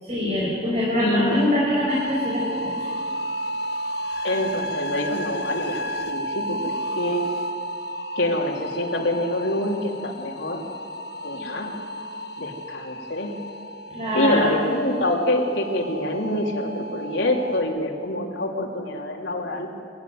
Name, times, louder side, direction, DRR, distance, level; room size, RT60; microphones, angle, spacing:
voice 1, 0.0-2.9 13.9-14.6, left 1 dB, 35° right, -5 dB, 6.0 m, -24 dB
voice 2, 1.0-1.4 4.2-7.3 8.2-10.6 11.2-11.9 12.4-13.4 14.1-19.7, left 1 dB, 85° left, -1 dB, 3.3 m, -26 dB
sound 1, 1.9-17.6, equal, 60° left, 1.5 m, -32 dB
23.5 x 17.5 x 9.5 m, 2.3 s
head